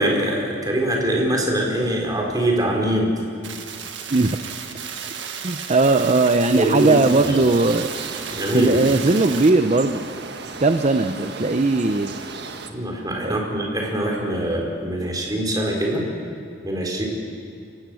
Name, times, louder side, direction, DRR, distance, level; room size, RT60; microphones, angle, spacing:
voice 1, 0.0-3.1 6.5-7.0 7.2-7.3 8.3-8.8 12.7-16.0 16.6-17.1, right 1 dB, 20° right, -1 dB, 4.3 m, -23 dB
sound 1, 3.4-9.5, right 7 dB, 85° right, 1.7 m, -34 dB
voice 2, 5.4-7.9 8.5-10.0 10.6-12.2 13.2-13.4, right 3 dB, 40° right, 8 dB, 0.7 m, -18 dB
sound 2, 6.8-12.7, right 4 dB, 65° right, 1.5 m, -35 dB
28.5 x 16.5 x 6.3 m, 2.5 s
head